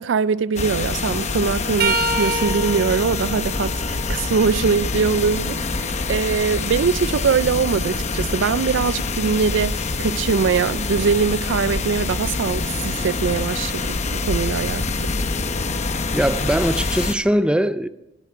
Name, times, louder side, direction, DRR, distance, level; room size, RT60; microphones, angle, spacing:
voice 1, 0.0-15.1, right 5 dB, 70° right, 0.4 m, -22 dB
sound 1, 0.6-17.1, left 3 dB, 40° left, 0.8 m, -25 dB
sound 2, 1.8-5.6 6.1-8.0 10.9-11.1 12.4-12.5 13.9-14.0, right 2 dB, 55° right, 1.0 m, -29 dB
voice 2, 16.1-17.9, right 1 dB, 5° right, 0.5 m, -20 dB
21.5 x 11.5 x 4.5 m
head